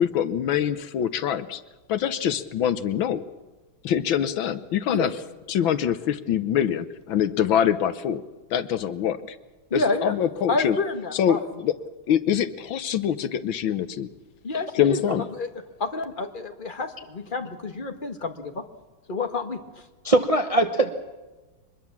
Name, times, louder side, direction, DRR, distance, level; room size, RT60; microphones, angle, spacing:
voice 1, 0.0-1.6 1.9-3.2 3.8-5.1 5.5-8.2 8.5-9.2 9.7-10.8 11.1-11.7 12.1-14.1 14.7-15.3, left 9 dB, 75° left, 13 dB, 1.7 m, -24 dB
voice 2, 9.7-10.1 10.5-11.4 14.4-15.0 15.3-15.5 15.8-18.6 19.1-19.6, left 3 dB, 25° left, 6 dB, 1.6 m, -28 dB
voice 3, 20.0-20.9, right 2 dB, 25° right, 6 dB, 0.8 m, -21 dB
24.0 x 21.0 x 7.3 m, 1.2 s
omnidirectional pair, 2.2 m